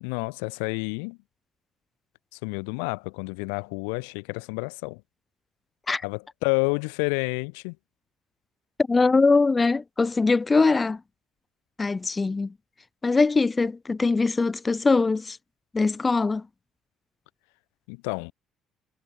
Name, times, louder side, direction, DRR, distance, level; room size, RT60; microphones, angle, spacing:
voice 1, 0.0-1.2 2.4-5.0 6.0-7.8 17.9-18.3, left 40 dB or more, 75° left, 0.3 m, -29 dB
voice 2, 8.9-11.0 11.8-12.5 13.0-15.4 15.7-16.4, left 3 dB, 25° left, 0.6 m, -22 dB
hypercardioid pair, 50°, 0 cm